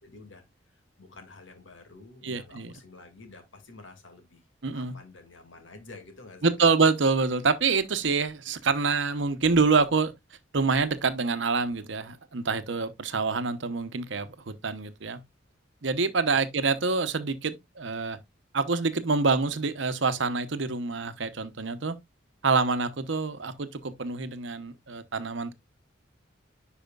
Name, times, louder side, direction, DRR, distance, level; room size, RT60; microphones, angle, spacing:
voice 1, 0.0-4.5 4.7-6.7 16.3-16.4, left 3 dB, 80° left, 2.1 m, -49 dB
voice 2, 2.2-2.7 4.6-5.0 6.4-10.1 10.5-15.2 15.8-18.2 18.5-21.9 22.4-25.5, right 4 dB, 70° right, 0.8 m, -26 dB
10.5 x 5.0 x 2.3 m
head